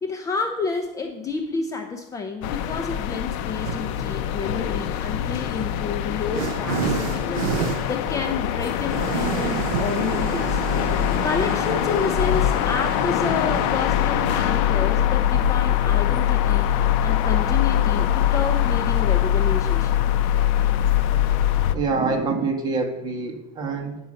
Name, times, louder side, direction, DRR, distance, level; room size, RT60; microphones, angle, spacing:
voice 1, 0.0-10.6 11.2-19.9, left 4 dB, 20° left, 4 dB, 0.7 m, -30 dB
sound 1, 2.4-21.8, left 11 dB, 65° left, 0.7 m, -23 dB
sound 2, 3.6-4.1 5.1-18.6, right 9 dB, 90° right, 0.7 m, -32 dB
voice 2, 21.7-24.0, right 4 dB, 25° right, 3 dB, 1.5 m, -25 dB
9.3 x 5.5 x 7.6 m, 0.92 s
cardioid pair, 155°, 17 cm